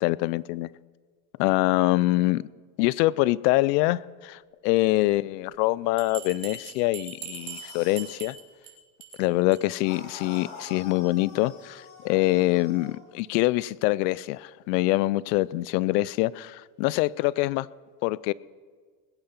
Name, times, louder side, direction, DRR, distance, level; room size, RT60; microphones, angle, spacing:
voice 1, 0.0-0.7 1.4-2.4 2.8-8.4 9.2-17.7 18.0-18.3, left 19 dB, 75° left, 0.6 m, -24 dB
Bell, 6.0-8.7 9.0-9.2 9.5-9.6 9.9-10.0 10.3-10.4, right 8 dB, 85° right, 3.0 m, -40 dB
sound 1, 7.3-8.2 9.8-13.0, left 4 dB, 55° left, 4.6 m, -45 dB
20.5 x 8.8 x 5.9 m
supercardioid pair, 120°, 48 cm